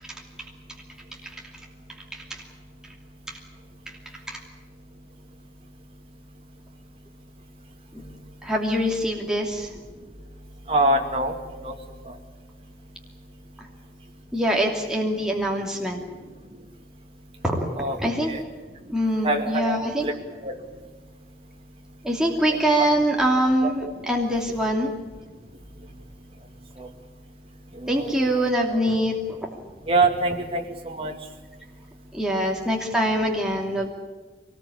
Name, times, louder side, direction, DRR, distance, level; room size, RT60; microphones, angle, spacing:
voice 1, 2.1-2.4 3.3-3.4 4.3-4.4 7.9-8.0 8.4-9.7 14.3-16.0 17.4-18.3 18.9-20.1 22.0-24.9 27.9-29.1 32.1-33.9, equal, 5° right, -1 dB, 2.8 m, -24 dB
voice 2, 10.7-11.3 11.6-11.7 17.8-18.0 18.3-18.4 19.2-20.1 20.4-20.5 23.6-23.9 26.8-26.9 27.8-28.5 29.9-31.1, right 2 dB, 30° right, 2 dB, 2.6 m, -24 dB
23.5 x 19.5 x 8.6 m, 1.4 s
head